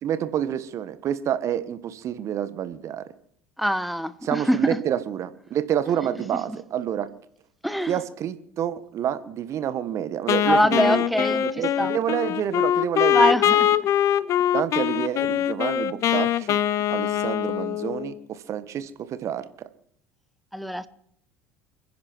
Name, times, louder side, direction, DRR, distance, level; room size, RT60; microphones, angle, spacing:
voice 1, 0.0-3.0 4.2-7.1 7.9-13.3 14.5-16.6 16.9-19.4, right 10 dB, 45° right, 1.4 m, -28 dB
voice 2, 3.6-4.8 7.6-7.9 10.4-11.9 13.1-13.7 20.5-20.9, equal, ahead, 1.2 m, -23 dB
Wind instrument woodwind instrument, 10.3-18.2, left 11 dB, 45° left, 0.8 m, -23 dB
29.0 x 10.5 x 4.6 m
figure-of-eight pair, 65°, 7 cm